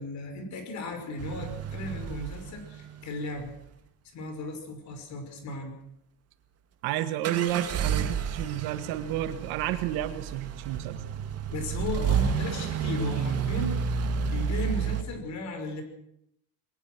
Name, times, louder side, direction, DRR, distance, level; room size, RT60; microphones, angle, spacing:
voice 1, 0.0-3.5 4.1-5.7 11.5-13.8 14.2-15.8, left 2 dB, 50° left, 6 dB, 5.8 m, -36 dB
sound 1, 1.2-3.5 7.2-15.0, right 7 dB, 40° right, 2.1 m, -30 dB
voice 2, 6.8-11.0, right 12 dB, 90° right, 9 dB, 2.1 m, -31 dB
22.0 x 20.0 x 6.3 m, 0.78 s
cardioid pair, 150°, 36 cm